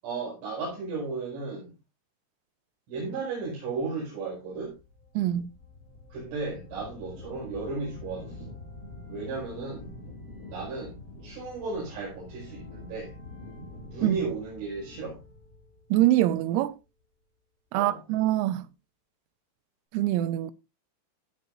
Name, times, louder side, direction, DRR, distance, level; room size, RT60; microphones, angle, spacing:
voice 1, 0.0-1.7 2.9-4.8 6.1-8.6 9.1-9.9 10.5-13.1 13.9-15.2 17.7-18.0, right 4 dB, 65° right, 7.6 m, -35 dB
sound 1, 4.5-16.6, left 1 dB, 25° left, 2.0 m, -46 dB
voice 2, 5.2-5.5 14.0-14.2 15.9-16.8 17.7-18.7 19.9-20.5, right 14 dB, 90° right, 3.5 m, -24 dB
16.5 x 8.2 x 2.6 m
omnidirectional pair, 6.0 m